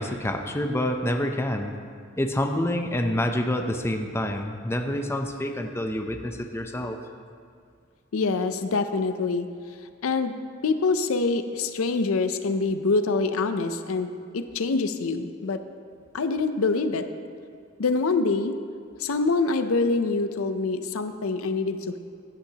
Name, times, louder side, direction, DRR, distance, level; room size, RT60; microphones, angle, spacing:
voice 1, 0.0-1.7 2.2-7.0, left 1 dB, 10° left, 4 dB, 0.5 m, -27 dB
voice 2, 8.1-9.5 10.0-10.3 10.6-15.6 16.1-17.1 17.8-18.5 19.0-22.0, left 3 dB, 80° left, 9 dB, 0.5 m, -25 dB
15.5 x 8.9 x 2.9 m, 2.2 s
head